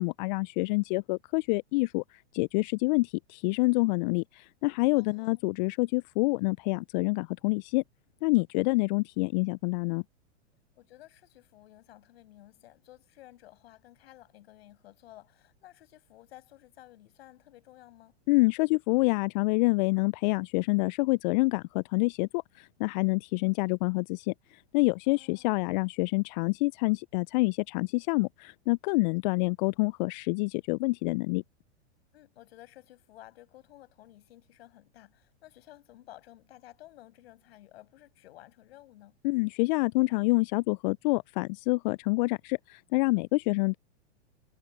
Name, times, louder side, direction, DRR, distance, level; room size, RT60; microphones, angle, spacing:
voice 1, 0.0-7.8 8.2-10.0 18.3-31.4 39.2-43.8, left 26 dB, 40° left, 0.6 m, -27 dB
voice 2, 4.9-5.5 8.5-8.7 10.8-18.1 25.1-25.5 32.1-39.2, left 15 dB, 60° left, 6.9 m, -54 dB
hypercardioid pair, 100°, 35 cm